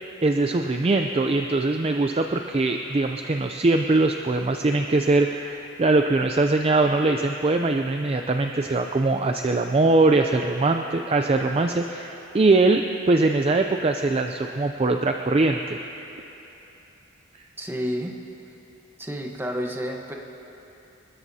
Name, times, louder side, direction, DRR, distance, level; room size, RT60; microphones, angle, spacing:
voice 1, 0.2-15.8, right 2 dB, 30° right, 4 dB, 0.4 m, -22 dB
voice 2, 17.6-18.1 19.0-20.1, equal, 10° right, 1 dB, 1.0 m, -30 dB
28.5 x 13.5 x 2.8 m, 3.0 s
head